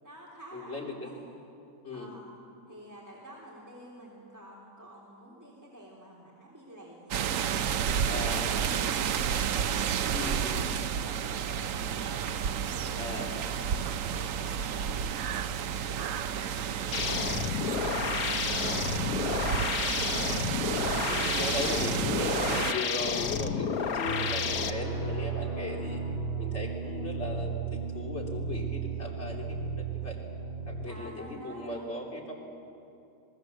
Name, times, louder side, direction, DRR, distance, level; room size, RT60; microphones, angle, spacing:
voice 1, 0.0-1.2 1.9-2.2 2.7-12.3 12.6-18.0 18.4-20.9 21.2-21.9 23.7-24.0 30.8-31.8, right 1 dB, 10° right, -4 dB, 3.5 m, -50 dB
voice 2, 0.5-1.1 1.8-2.1 8.0-8.5 10.1-10.7 13.0-13.3 16.8-17.0 18.9-19.2 21.1-26.0 26.4-30.2 30.7-32.3, left 1 dB, 45° left, -2 dB, 3.8 m, -37 dB
sound 1, 7.1-22.7, right 8 dB, 65° right, 1.0 m, -31 dB
sound 2, 16.9-24.7, left 6 dB, 75° left, 1.5 m, -31 dB
sound 3, 24.0-30.9, right 5 dB, 80° right, 7.7 m, -35 dB
27.0 x 19.5 x 7.9 m, 2.7 s
omnidirectional pair, 1.6 m